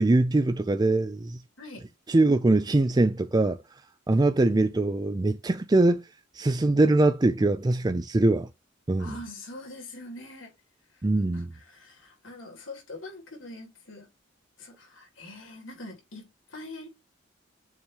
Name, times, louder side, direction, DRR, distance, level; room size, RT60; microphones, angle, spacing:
voice 1, 0.0-1.4 2.1-3.6 4.1-6.0 6.3-8.5 8.9-9.2 11.0-11.5, right 2 dB, 20° right, 0.4 m, -22 dB
voice 2, 9.0-10.5 10.9-11.0 11.3-14.1 14.6-16.9, left 2 dB, 80° left, 3.4 m, -43 dB
7.1 x 3.1 x 5.5 m
head